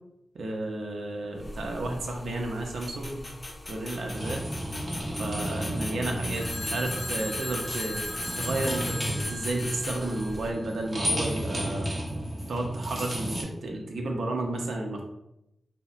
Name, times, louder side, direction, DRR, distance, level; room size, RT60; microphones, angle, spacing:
voice 1, 0.3-3.2 3.7-4.4 5.2-8.0 8.4-11.9 12.5-15.0, right 2 dB, 85° right, 2 dB, 0.5 m, -32 dB
sound 1, 1.4-10.5, left 2 dB, 35° left, 0.4 m, -40 dB
sound 2, 4.1-13.4, equal, 25° right, 0.7 m, -34 dB
Telephone, 6.3-10.6, left 1 dB, 80° left, 0.6 m, -38 dB
2.8 x 2.1 x 2.3 m, 0.84 s
cardioid pair, 75°, 0 cm